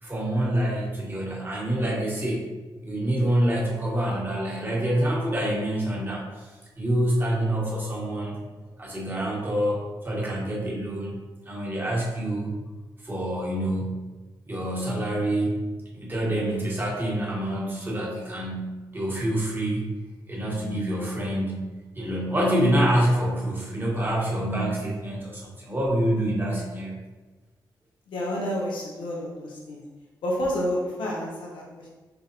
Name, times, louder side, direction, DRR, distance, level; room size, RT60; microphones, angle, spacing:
voice 1, 0.0-2.5 2.8-8.4 8.8-11.1 11.4-12.5 13.0-14.0 14.5-15.6 15.9-19.8 20.3-21.6 21.9-27.0, right 1 dB, 25° right, -4 dB, 1.4 m, -26 dB
voice 2, 28.1-29.8 30.2-31.9, equal, 85° left, -3 dB, 0.7 m, -29 dB
4.5 x 3.3 x 2.7 m, 1.3 s
cardioid pair, 65°, 8 cm